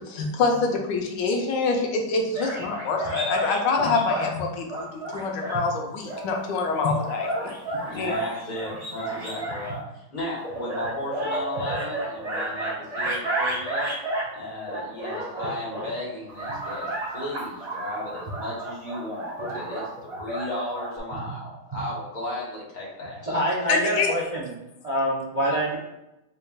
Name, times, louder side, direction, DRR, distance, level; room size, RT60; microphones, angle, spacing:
voice 1, 0.1-7.5 7.9-8.1 23.7-24.1, left 4 dB, 80° left, 1 dB, 1.3 m, -25 dB
sound 1, 2.3-4.3 4.7-5.6 6.1-9.7 10.4-14.3 14.7-15.9 16.3-21.0, right 2 dB, 50° right, 1.6 m, -31 dB
voice 2, 7.8-13.9 14.3-19.3 19.5-23.2, left 1 dB, 30° left, -6 dB, 1.2 m, -35 dB
voice 3, 23.2-24.5 24.8-25.8, right 1 dB, 75° right, -6 dB, 0.3 m, -26 dB
4.2 x 3.3 x 2.3 m, 0.90 s
omnidirectional pair, 1.9 m